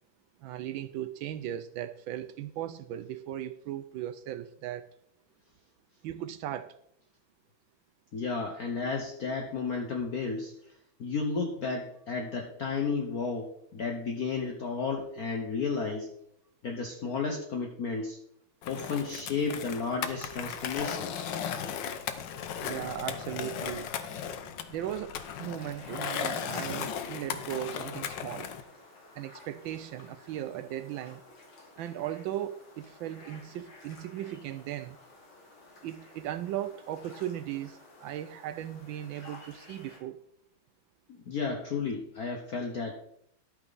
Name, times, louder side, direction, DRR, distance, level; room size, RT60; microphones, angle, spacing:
voice 1, 0.4-4.9 6.0-6.8 22.6-23.9 24.7-28.5 29.2-31.2 31.8-35.0 35.8-40.2, right 12 dB, 75° right, 1.3 m, -37 dB
voice 2, 8.1-16.1 16.6-18.2 18.7-21.3 41.1-43.0, left 4 dB, 50° left, 1.4 m, -33 dB
Skateboard, 18.6-28.6, left 8 dB, 65° left, 1.4 m, -36 dB
sound 1, 25.5-40.0, left 2 dB, 85° left, 3.6 m, -53 dB
11.5 x 8.7 x 4.1 m
omnidirectional pair, 2.2 m